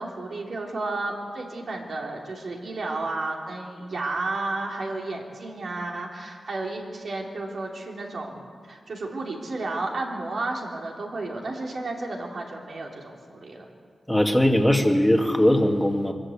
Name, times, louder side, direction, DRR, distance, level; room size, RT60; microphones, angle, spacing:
voice 1, 0.0-13.7, right 2 dB, 60° right, 0 dB, 3.2 m, -32 dB
voice 2, 14.1-16.1, left 1 dB, 5° left, 3 dB, 2.0 m, -20 dB
24.0 x 13.5 x 8.6 m, 2.1 s
wide cardioid pair, 115°, 0 cm